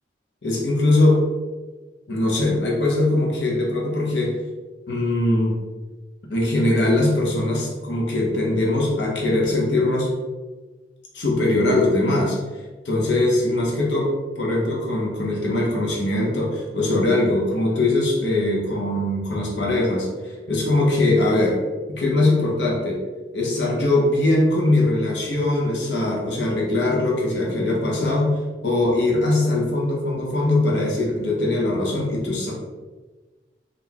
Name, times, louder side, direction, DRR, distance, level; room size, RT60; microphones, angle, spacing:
voice 1, 0.4-1.2 2.1-4.4 4.9-5.6 6.3-10.1 11.1-12.4 12.8-21.6 21.9-23.0 23.3-32.5, left 2 dB, 80° left, -2 dB, 0.8 m, -21 dB
3.8 x 2.5 x 2.8 m, 1.2 s
head